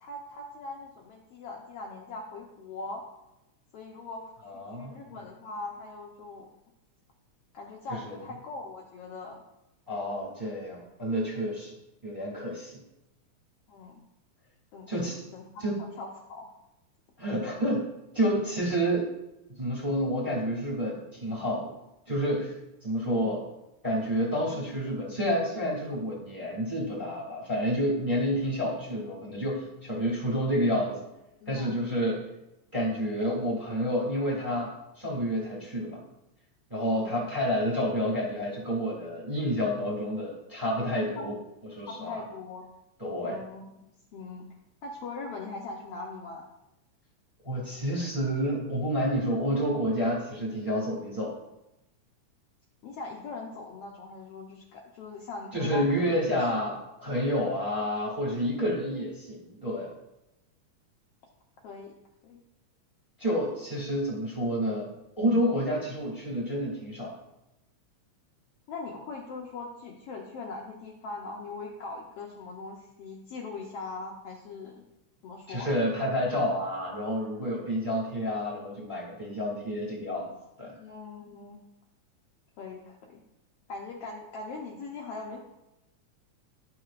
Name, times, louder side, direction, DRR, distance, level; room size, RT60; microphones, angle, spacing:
voice 1, 0.0-3.0 3.7-6.5 7.5-9.4 13.7-14.0 14.7-16.5 23.0-23.4 31.4-31.8 36.8-37.2 41.2-41.3 41.9-42.6 43.2-43.7 44.1-44.5 44.8-46.4 52.8-56.5 61.6-62.0 62.2-62.4 68.7-74.8 75.2-75.7 80.8-81.6 82.6-83.2 83.7-85.4, left 3 dB, 80° left, -1 dB, 1.3 m, -41 dB
voice 2, 4.4-5.2 7.9-8.2 9.9-11.7 12.0-12.8 14.9-15.2 15.6-15.8 17.2-17.9 18.1-19.1 19.5-21.7 22.1-22.5 22.8-23.4 23.8-31.0 31.5-32.2 32.7-36.0 36.7-41.4 41.7-42.2 43.0-43.4 47.4-51.4 55.5-59.9 63.2-64.9 65.2-67.1 75.5-80.3 80.6-80.8, equal, 5° right, -4 dB, 2.0 m, -29 dB
11.5 x 5.9 x 2.5 m, 0.92 s
omnidirectional pair, 3.7 m